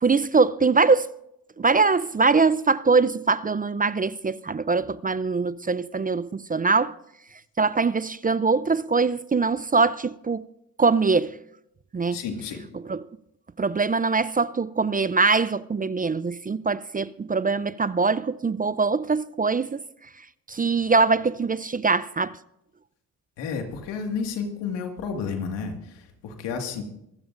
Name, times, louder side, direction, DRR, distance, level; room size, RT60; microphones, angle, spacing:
voice 1, 0.0-1.1 1.6-7.0 7.6-10.4 10.8-11.4 11.9-12.2 12.9-13.0 13.6-19.8 20.5-22.4, right 4 dB, 20° right, 0.5 m, -22 dB
voice 2, 12.1-12.6 23.4-26.8, left 5 dB, 90° left, 2.0 m, -31 dB
23.5 x 16.0 x 2.6 m
supercardioid pair, 60°, 40 cm